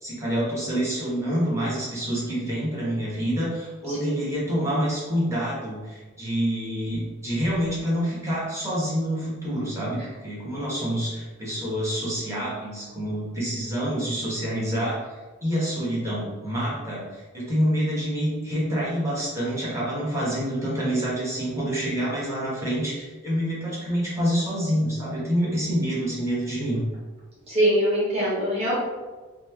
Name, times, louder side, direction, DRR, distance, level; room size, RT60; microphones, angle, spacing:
voice 1, 0.0-15.0 15.4-26.8, equal, 15° right, -7 dB, 0.9 m, -27 dB
voice 2, 27.5-28.7, equal, 30° right, -8 dB, 1.3 m, -23 dB
3.1 x 2.1 x 3.3 m, 1.3 s
head